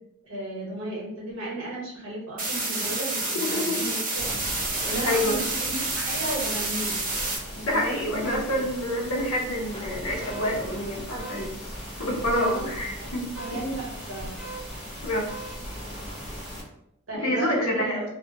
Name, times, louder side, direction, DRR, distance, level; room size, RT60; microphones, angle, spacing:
voice 1, 0.2-4.3 4.6-7.0 7.6-8.7 12.4-13.1 13.4-14.4 17.1-18.0, right 1 dB, 65° right, -4 dB, 1.0 m, -34 dB
sound 1, 2.4-7.4, right 2 dB, 40° right, 0.6 m, -29 dB
voice 2, 3.3-3.8 5.0-5.4 7.5-11.5 12.0-13.6 15.0-15.3 17.1-18.0, left 1 dB, 75° left, -1 dB, 0.7 m, -27 dB
sound 2, 4.2-16.6, equal, 5° right, 1.0 m, -38 dB
sound 3, 4.7-4.9 8.0-8.3 8.8-8.9 9.4-11.7 13.5-13.6 13.9-14.1 14.5-14.6, equal, 25° left, 0.6 m, -45 dB
2.3 x 2.1 x 2.7 m, 0.77 s
head